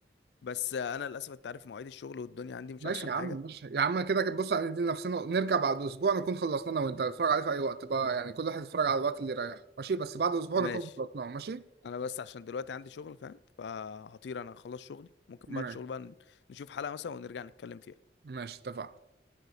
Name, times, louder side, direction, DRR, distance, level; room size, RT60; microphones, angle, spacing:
voice 1, 0.4-3.4 10.6-10.8 11.8-16.1 16.5-17.9, left 6 dB, 85° left, 0.4 m, -39 dB
voice 2, 2.8-11.6 15.5-15.8 18.2-18.9, right 5 dB, 60° right, 0.4 m, -31 dB
9.2 x 9.1 x 4.9 m
head